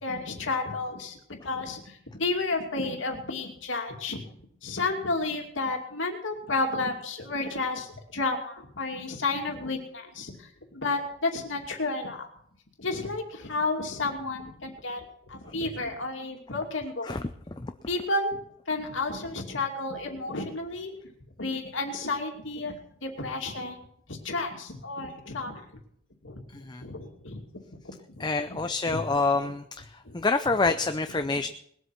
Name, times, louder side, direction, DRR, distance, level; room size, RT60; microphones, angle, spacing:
voice 1, 0.0-4.2 4.6-12.3 12.8-17.2 17.5-17.6 17.9-20.9 21.4-22.7 23.0-23.8 24.1-25.6 26.2-27.4 28.1-28.6 28.9-29.0 29.4-29.5 30.0-30.2 30.5-30.7, left 3 dB, 70° left, 2 dB, 2.6 m, -32 dB
voice 2, 28.2-29.8 30.1-31.5, left 3 dB, 20° left, 8 dB, 0.5 m, -26 dB
20.5 x 8.1 x 5.8 m, 0.68 s
head